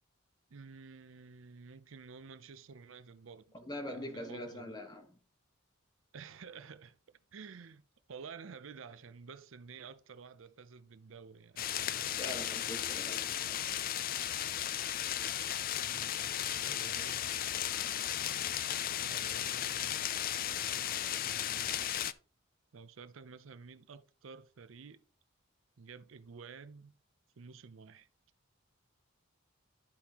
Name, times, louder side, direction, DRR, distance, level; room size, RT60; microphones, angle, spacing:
voice 1, 0.5-3.4 3.9-4.8 6.1-7.8 8.1-11.6 15.1-17.3 19.0-20.1 22.7-25.1 25.8-26.9 27.4-28.1, right 5 dB, 70° right, 0.5 m, -51 dB
voice 2, 3.5-5.2 12.2-13.6, left 1 dB, 20° left, 1.3 m, -43 dB
sound 1, 11.6-22.1, left 11 dB, 45° left, 0.4 m, -35 dB
11.5 x 5.5 x 2.9 m
head